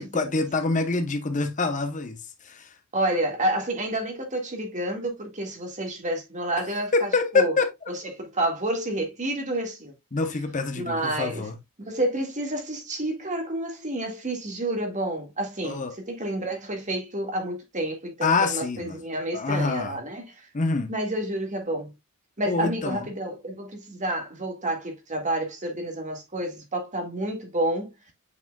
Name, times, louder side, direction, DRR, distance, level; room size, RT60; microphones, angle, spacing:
voice 1, 0.0-2.2 2.4-2.7 6.9-7.7 10.1-11.6 15.6-15.9 18.2-19.0 19.3-20.0 20.5-20.9 22.5-23.1, left 3 dB, 35° left, 0.9 m, -25 dB
voice 2, 2.9-7.5 8.1-9.9 10.8-11.5 11.8-20.3 20.9-21.9 22.4-27.9, right 1 dB, 35° right, 1.8 m, -29 dB
8.3 x 5.0 x 2.3 m
head